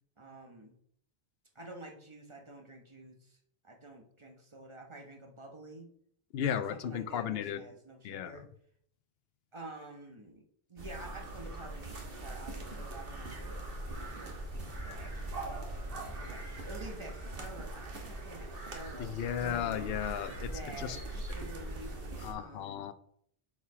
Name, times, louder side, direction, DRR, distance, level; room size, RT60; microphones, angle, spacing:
voice 1, 0.2-0.7 1.5-3.4 3.6-5.9 6.5-8.5 9.5-14.4 14.8-19.1 19.4-19.8 20.4-22.8, right 2 dB, 30° right, 2 dB, 1.1 m, -49 dB
voice 2, 6.3-7.6 8.0-8.3 19.2-21.0 22.2-22.9, left 9 dB, 75° left, 12 dB, 0.8 m, -35 dB
sound 1, 10.8-22.3, right 1 dB, 65° right, 1.5 m, -41 dB
6.4 x 4.9 x 4.7 m, 0.67 s
omnidirectional pair, 1.0 m